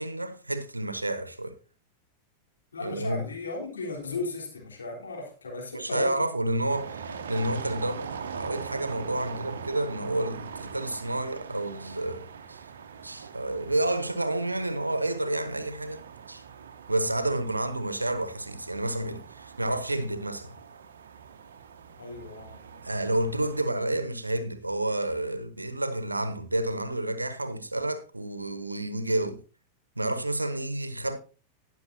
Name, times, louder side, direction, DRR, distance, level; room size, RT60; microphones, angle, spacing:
voice 1, 0.0-1.6 2.8-3.3 5.7-12.6 13.0-16.0 16.3-16.4 16.9-20.6 22.8-29.4 30.0-31.2, right 1 dB, 90° right, 1.0 m, -30 dB
voice 2, 2.7-6.3 22.0-22.6, left 3 dB, 80° left, 3.7 m, -36 dB
sound 1, 6.7-23.6, right 6 dB, 70° right, 0.9 m, -42 dB
19.0 x 6.5 x 2.7 m
figure-of-eight pair, 90°, 0 cm